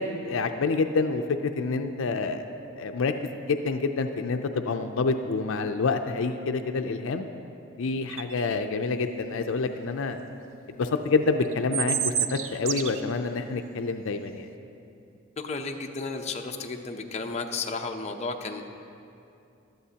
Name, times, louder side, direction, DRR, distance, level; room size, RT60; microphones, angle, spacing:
voice 1, 0.0-2.4 2.8-3.1 3.5-7.3 7.8-10.2 10.7-14.5, left 4 dB, 70° left, 7 dB, 0.5 m, -27 dB
sound 1, 8.1-8.4 11.5-13.0, right 9 dB, 75° right, 0.5 m, -28 dB
voice 2, 15.4-18.6, left 4 dB, 35° left, 3 dB, 0.6 m, -33 dB
16.0 x 12.0 x 2.9 m, 2.6 s
head